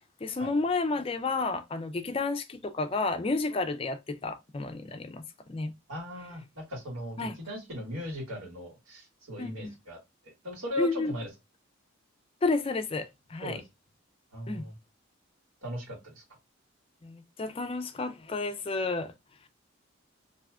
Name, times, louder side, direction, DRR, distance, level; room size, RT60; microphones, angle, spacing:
voice 1, 0.2-5.2 5.5-5.7 7.2-7.3 9.4-9.8 10.8-11.1 12.4-13.6 14.5-14.6 17.0-19.1, left 3 dB, 25° left, 0.3 m, -31 dB
voice 2, 5.9-10.0 10.2-11.3 13.4-13.6 14.3-14.7 15.6-16.2, left 1 dB, 90° right, 1.7 m, -38 dB
2.7 x 2.4 x 3.2 m
head